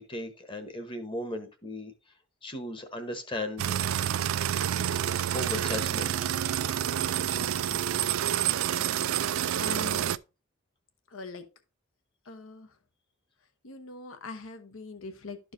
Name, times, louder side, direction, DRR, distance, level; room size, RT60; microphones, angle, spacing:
voice 1, 0.0-1.9 2.4-4.1 5.3-6.4, left 1 dB, 25° left, 1.0 m, -37 dB
sound 1, 3.6-10.2, right 10 dB, 80° right, 0.4 m, -28 dB
voice 2, 9.6-10.1 11.1-11.4 12.3-12.8 13.6-15.5, left 3 dB, 75° left, 0.9 m, -42 dB
12.5 x 4.7 x 2.6 m
head